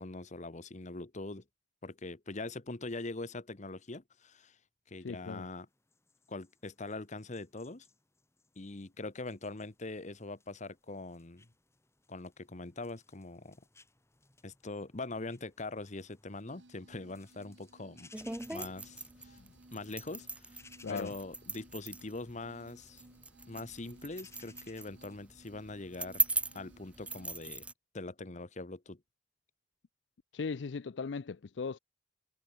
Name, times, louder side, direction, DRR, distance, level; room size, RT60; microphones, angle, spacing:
voice 1, 0.0-1.4 1.8-4.6 4.9-5.7 6.3-7.9 8.6-11.5 12.1-13.6 14.4-18.1 18.5-19.4 19.7-20.6 20.9-23.0 23.5-26.2 26.5-27.6 27.9-29.0, left 2 dB, 40° left, 1.2 m, -42 dB
voice 2, 5.0-5.5 19.4-19.5 20.8-21.1 30.3-31.8, left 5 dB, 75° left, 0.5 m, -38 dB
sound 1, 5.7-25.2, left 3 dB, 15° left, 2.9 m, -63 dB
sound 2, 16.5-27.5, right 2 dB, 90° right, 1.8 m, -61 dB
sound 3, 18.1-27.7, right 3 dB, 5° right, 0.6 m, -39 dB
head